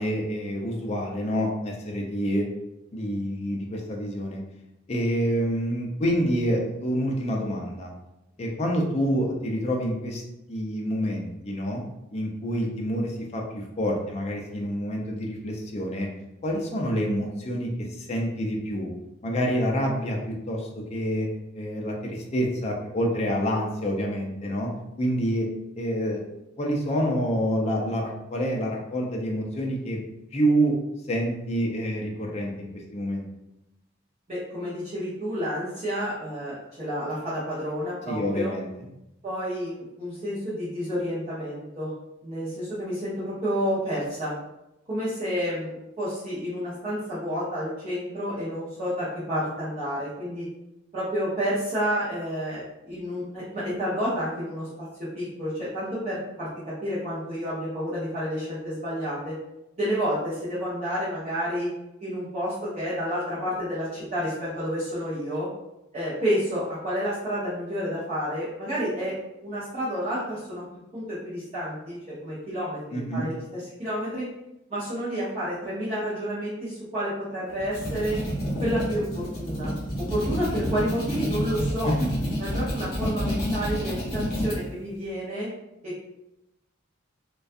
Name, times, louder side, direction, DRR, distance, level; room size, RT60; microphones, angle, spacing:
voice 1, 0.0-2.5 2.9-4.4 4.9-7.9 8.4-10.2 10.5-11.8 12.1-16.1 16.4-18.9 19.2-21.3 21.5-24.7 25.0-25.5 25.8-26.2 26.6-30.0 30.3-30.8 31.1-33.3 38.1-38.9 72.9-73.3 81.8-82.1, equal, 30° left, 0 dB, 0.4 m, -27 dB
voice 2, 34.3-38.5 39.2-41.9 42.2-44.3 44.9-50.5 50.9-59.3 59.8-61.7 62.0-65.5 65.9-69.2 69.4-70.6 70.9-74.3 74.7-78.2 78.6-81.9 82.4-85.5 85.8-86.0, equal, 35° right, -12 dB, 0.7 m, -30 dB
sound 1, 77.5-84.6, equal, 50° left, 0.8 m, -29 dB
2.3 x 2.2 x 2.5 m, 0.91 s
head